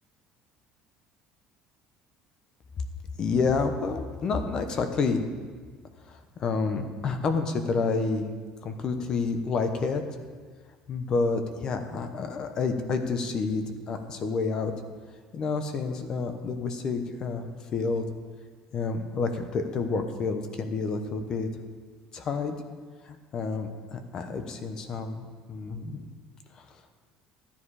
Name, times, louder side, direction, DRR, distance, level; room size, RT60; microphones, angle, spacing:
voice 1, 3.2-5.2 6.1-8.3 8.6-10.0 10.9-14.7 15.3-17.4 17.7-18.0 18.7-21.5 22.1-22.5 23.1-26.1, left 4 dB, 35° left, 7 dB, 1.0 m, -29 dB
13.0 x 10.0 x 4.8 m, 1.5 s
cardioid pair, 165°, 2 cm